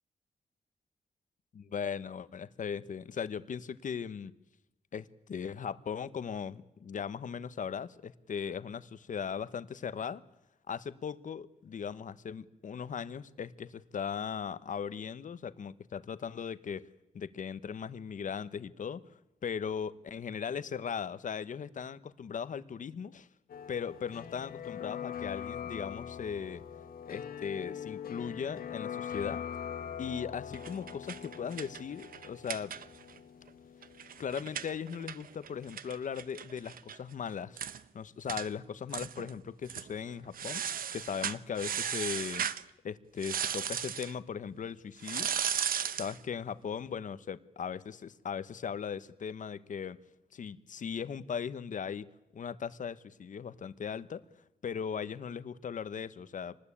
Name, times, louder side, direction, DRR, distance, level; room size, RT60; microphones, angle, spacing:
voice 1, 1.5-4.3 4.9-10.2 10.7-16.8 17.1-19.0 19.4-23.3 23.7-26.6 27.1-29.4 30.0-32.7 34.2-37.6 37.9-40.6 40.9-42.5 42.8-45.3 46.0-50.0 50.3-52.1 52.3-54.2 54.6-56.6, left 7 dB, 60° left, 14 dB, 1.1 m, -38 dB
sound 1, 23.5-35.2 35.5-35.6, left 8 dB, 85° left, 1.4 m, -42 dB
sound 2, 30.5-33.2 33.5-33.6 33.8-37.0 37.3-37.4 37.6-37.8 38.3-38.5 38.9-39.3 39.6-39.9 40.3-42.6 43.2-44.1 45.0-46.2, right 8 dB, 80° right, 0.8 m, -36 dB
25.0 x 20.0 x 8.7 m, 0.89 s
wide cardioid pair, 110°, 15 cm